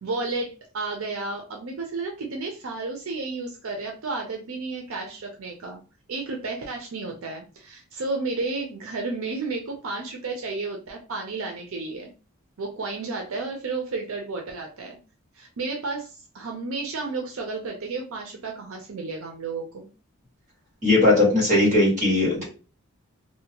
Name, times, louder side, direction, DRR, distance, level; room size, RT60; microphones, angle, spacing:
voice 1, 0.0-5.8 6.1-12.1 12.6-15.0 15.4-19.9, right 3 dB, 75° right, 2 dB, 0.5 m, -32 dB
voice 2, 20.8-22.4, left 2 dB, 35° right, -4 dB, 1.4 m, -19 dB
2.7 x 2.1 x 2.8 m, 0.34 s
head